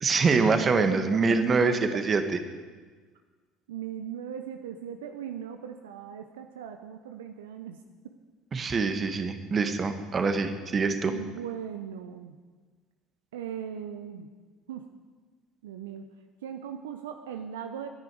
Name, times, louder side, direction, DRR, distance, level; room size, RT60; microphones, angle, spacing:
voice 1, 0.0-1.8 2.1-2.2 8.5-11.1, right 4 dB, 35° right, 8 dB, 1.6 m, -24 dB
voice 2, 3.7-8.2 11.1-12.4 13.3-14.3 14.7-14.9 15.6-16.1 16.4-17.9, right 8 dB, 75° right, 7 dB, 0.8 m, -39 dB
23.0 x 10.5 x 4.9 m, 1.4 s
figure-of-eight pair, 65°, 0 cm